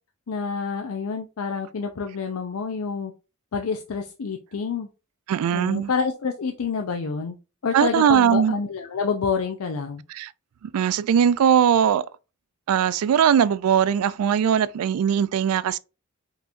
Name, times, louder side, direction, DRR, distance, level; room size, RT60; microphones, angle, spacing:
voice 1, 0.3-3.1 3.5-4.9 5.5-7.4 7.6-10.0, left 5 dB, 75° left, 0.5 m, -28 dB
voice 2, 5.3-5.9 7.7-8.6 10.1-10.3 10.7-12.0 12.7-15.8, right 8 dB, 80° right, 0.3 m, -20 dB
5.5 x 2.9 x 2.5 m
head